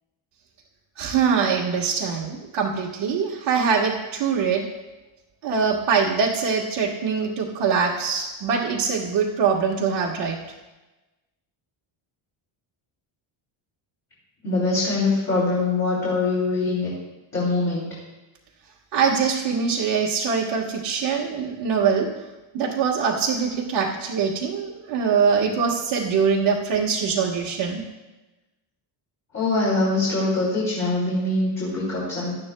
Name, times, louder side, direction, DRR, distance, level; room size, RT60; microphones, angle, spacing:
voice 1, 1.0-4.7 5.4-10.4 18.9-22.1 22.5-27.8, right 6 dB, 65° right, -5 dB, 1.4 m, -23 dB
voice 2, 14.4-16.9 17.3-17.9 29.3-32.3, left 2 dB, 35° left, -8 dB, 3.4 m, -23 dB
17.5 x 11.5 x 2.3 m, 1.1 s
cardioid pair, 165°, 48 cm